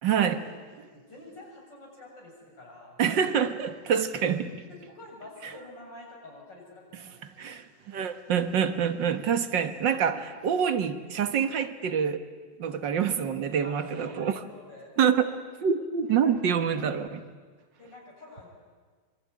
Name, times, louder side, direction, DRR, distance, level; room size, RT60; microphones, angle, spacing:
voice 1, 0.0-0.4 3.0-4.6 7.4-12.2 12.6-14.3 15.0-17.2, right 7 dB, 85° right, 10 dB, 2.1 m, -26 dB
voice 2, 0.7-3.0 4.7-7.1 13.6-14.9 16.1-16.8 17.8-18.5, left 2 dB, 80° left, -1 dB, 8.0 m, -47 dB
25.0 x 24.5 x 9.6 m, 1.5 s
omnidirectional pair, 1.9 m